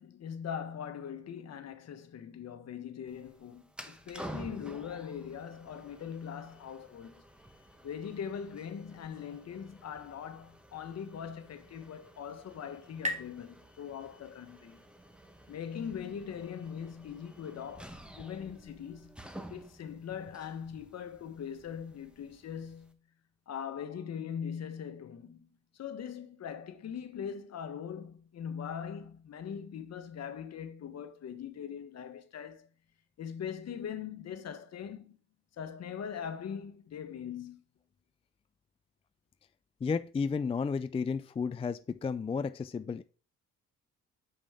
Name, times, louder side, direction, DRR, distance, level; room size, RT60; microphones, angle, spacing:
voice 1, 0.0-7.2 7.8-14.8 15.5-19.2 19.5-23.0 23.5-25.5 25.7-32.7 33.2-35.2 35.5-37.6, left 8 dB, 60° left, 1.2 m, -41 dB
sound 1, 3.1-22.9, right 1 dB, 5° right, 1.0 m, -51 dB
sound 2, 11.6-14.9, left 1 dB, 25° right, 1.7 m, -43 dB
voice 2, 39.8-43.0, left 5 dB, 20° left, 0.4 m, -32 dB
7.0 x 5.4 x 3.6 m
cardioid pair, 90°, 30 cm